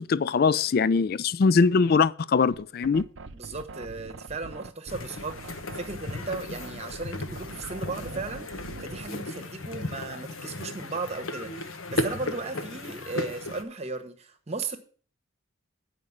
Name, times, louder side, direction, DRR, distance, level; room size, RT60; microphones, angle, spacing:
voice 1, 0.0-3.0, left 5 dB, 45° left, 0.3 m, -22 dB
sound 1, 2.5-9.2, right 3 dB, 60° right, 0.6 m, -43 dB
voice 2, 3.3-14.8, right 3 dB, 30° right, 1.1 m, -36 dB
sound 2, 4.9-13.6, left 2 dB, 80° left, 1.1 m, -35 dB
9.4 x 5.2 x 7.2 m
head